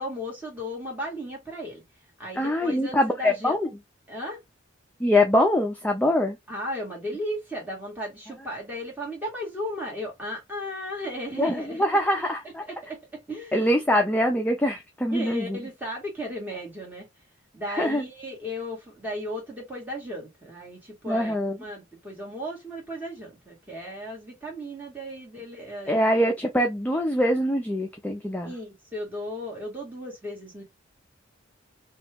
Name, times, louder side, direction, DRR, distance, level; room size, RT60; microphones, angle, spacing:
voice 1, 0.0-1.8 2.2-3.6 4.1-4.4 6.5-11.9 12.7-13.5 15.1-17.1 17.5-26.1 28.4-30.6, equal, 10° right, 1.6 m, -35 dB
voice 2, 2.3-3.7 5.0-6.4 11.4-12.6 13.5-15.6 17.7-18.0 21.1-21.6 25.9-28.5, left 1 dB, 5° left, 0.4 m, -23 dB
3.0 x 2.3 x 3.3 m
head